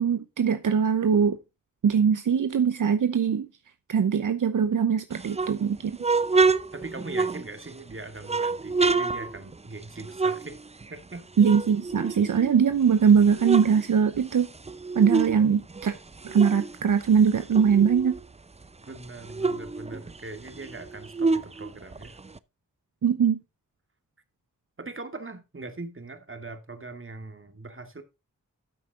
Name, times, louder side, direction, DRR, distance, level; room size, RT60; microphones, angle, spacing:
voice 1, 0.0-1.4 1.8-3.5 3.9-6.0 11.4-14.5 15.0-15.9 16.2-18.2 23.0-23.4, right 7 dB, 70° right, 0.8 m, -21 dB
sound 1, 5.1-7.8 8.2-11.1 11.4-12.7 13.1-15.4 15.7-18.3 18.6-18.7 19.0-22.4, right 4 dB, 20° right, 0.5 m, -28 dB
voice 2, 6.7-10.6 10.9-11.2 18.8-22.1 24.8-28.0, right 3 dB, 40° right, 2.2 m, -41 dB
12.5 x 5.9 x 3.7 m
cardioid pair, 50°, 32 cm